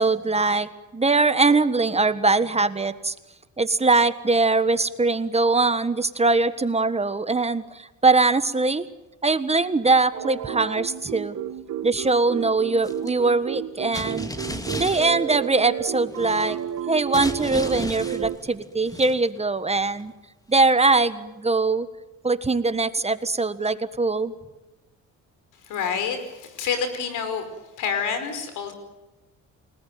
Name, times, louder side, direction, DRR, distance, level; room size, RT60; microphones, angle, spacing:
voice 1, 0.0-3.1 3.6-8.9 9.2-11.4 11.8-14.3 14.8-16.6 16.9-20.1 20.5-21.9 22.2-24.3, right 3 dB, 20° right, 12 dB, 1.5 m, -22 dB
sound 1, 10.1-18.4, right 10 dB, 70° right, 1.8 m, -32 dB
sound 2, 12.8-13.1 13.9-15.6 16.1-16.8 17.1-19.4 19.7-20.1, left 1 dB, 10° left, 2.6 m, -34 dB
voice 2, 25.7-27.4 27.8-28.7, left 6 dB, 85° left, 9 dB, 5.2 m, -27 dB
30.0 x 19.5 x 9.3 m, 1.1 s
cardioid pair, 90°, 30 cm